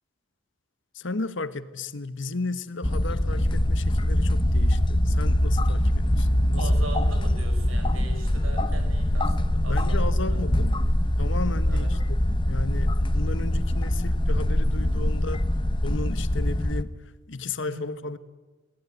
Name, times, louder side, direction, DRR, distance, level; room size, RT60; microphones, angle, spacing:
voice 1, 0.9-6.7 9.7-10.7 11.2-12.2 12.5-15.4 15.8-17.0 17.3-18.2, left 3 dB, 60° left, 13 dB, 1.2 m, -34 dB
sound 1, 2.8-16.8, left 1 dB, 25° left, 0.8 m, -23 dB
voice 2, 6.6-10.7 11.7-11.9 17.6-17.9, right 1 dB, 85° right, 5 dB, 5.9 m, -39 dB
22.5 x 18.0 x 9.3 m, 1.3 s
head